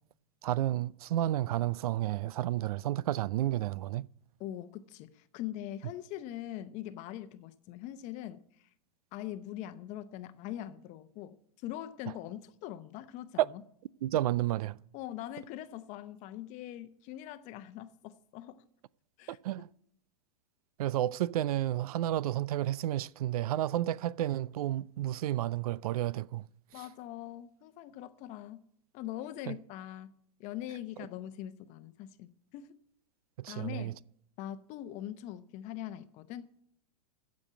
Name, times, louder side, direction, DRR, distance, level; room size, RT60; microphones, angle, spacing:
voice 1, 0.4-4.1 13.4-13.5 14.0-14.8 19.3-19.7 20.8-26.5 29.5-29.6 33.4-33.9, right 13 dB, 70° right, 0.4 m, -31 dB
voice 2, 4.4-8.4 9.1-11.4 11.6-13.6 14.9-18.6 19.2-19.4 26.7-28.6 28.9-30.1 30.4-32.7 33.5-33.9 34.4-36.6, left 12 dB, 40° left, 0.8 m, -42 dB
14.5 x 5.3 x 8.1 m
hypercardioid pair, 125°, 20 cm